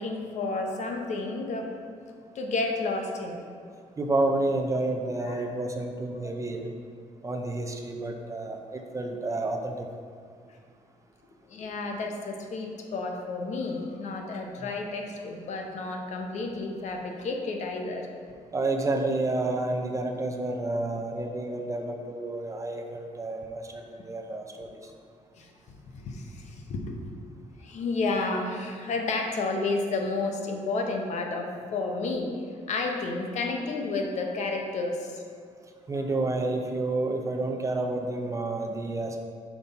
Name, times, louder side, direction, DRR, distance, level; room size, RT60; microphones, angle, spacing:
voice 1, 0.0-1.7 2.3-3.4 3.7-3.8 5.2-5.5 11.5-18.1 25.4-27.0 27.6-32.3 32.7-35.2, left 3 dB, 60° left, 3 dB, 0.8 m, -31 dB
voice 2, 4.0-6.7 7.2-9.9 18.5-24.8 35.9-39.2, right 2 dB, 25° right, 3 dB, 0.5 m, -30 dB
5.9 x 5.3 x 4.0 m, 2.1 s
cardioid pair, 125°, 13 cm